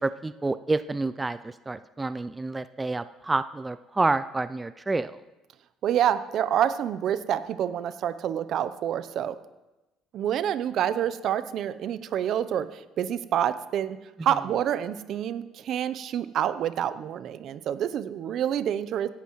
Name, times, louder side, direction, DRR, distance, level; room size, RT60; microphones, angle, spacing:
voice 1, 0.0-5.1, right 3 dB, 20° right, 14 dB, 0.4 m, -28 dB
voice 2, 5.8-9.4 10.1-19.1, right 10 dB, 60° right, 14 dB, 0.7 m, -27 dB
16.5 x 11.5 x 3.1 m, 1.0 s
supercardioid pair, 75°, 0 cm